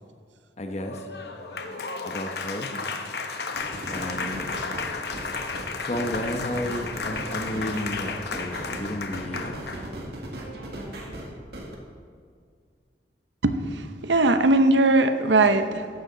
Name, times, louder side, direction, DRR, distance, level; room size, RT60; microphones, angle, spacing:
voice 1, 0.6-1.0 2.0-2.7 3.9-4.5 5.8-9.5, left 1 dB, 35° left, 6 dB, 1.0 m, -32 dB
Applause, 0.7-9.9, left 4 dB, 60° left, 1.0 m, -33 dB
sound 1, 3.5-11.7, right 1 dB, 60° right, 2.0 m, -37 dB
voice 2, 13.4-15.9, right 2 dB, 80° right, 9 dB, 0.9 m, -20 dB
15.0 x 11.5 x 3.9 m, 2.1 s
head